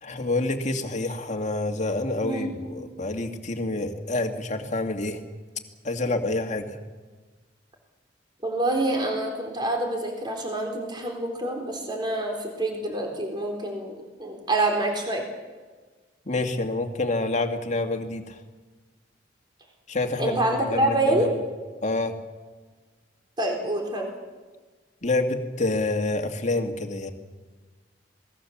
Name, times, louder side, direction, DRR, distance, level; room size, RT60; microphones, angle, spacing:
voice 1, 0.0-5.2 5.8-6.8 16.3-18.4 19.9-21.3 21.8-22.2 25.0-27.1, left 2 dB, 40° left, 5 dB, 2.1 m, -27 dB
voice 2, 8.4-15.2 20.2-21.3 23.4-24.1, right 1 dB, 25° right, 2 dB, 4.0 m, -26 dB
27.0 x 20.0 x 7.4 m, 1.4 s
head